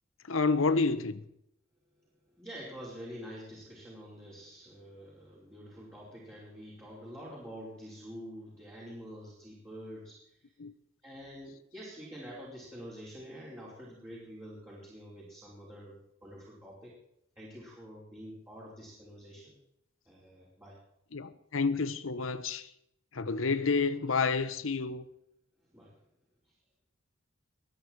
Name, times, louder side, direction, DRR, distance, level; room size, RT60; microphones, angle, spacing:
voice 1, 0.3-1.2 10.6-10.7 21.1-22.7 23.1-25.0, left 4 dB, 80° left, 1.0 m, -29 dB
voice 2, 2.4-10.2 11.0-16.9 17.4-19.5 20.1-20.8 25.7-25.9, equal, 15° right, 5.2 m, -47 dB
22.0 x 10.0 x 4.7 m
head